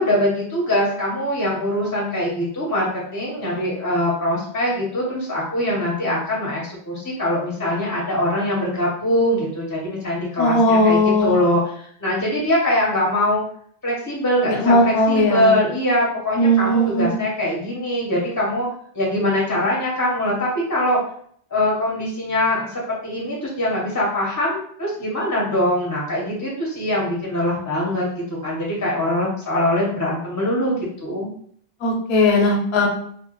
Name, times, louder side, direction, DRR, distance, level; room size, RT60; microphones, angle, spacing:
voice 1, 0.0-13.4 13.8-18.7 18.9-21.0 21.5-31.3, left 1 dB, 25° left, -4 dB, 0.4 m, -22 dB
voice 2, 10.4-11.4 14.5-15.5 16.4-17.2 31.8-32.9, left 1 dB, 80° left, 1 dB, 0.8 m, -17 dB
2.1 x 2.1 x 2.8 m, 0.62 s
omnidirectional pair, 1.1 m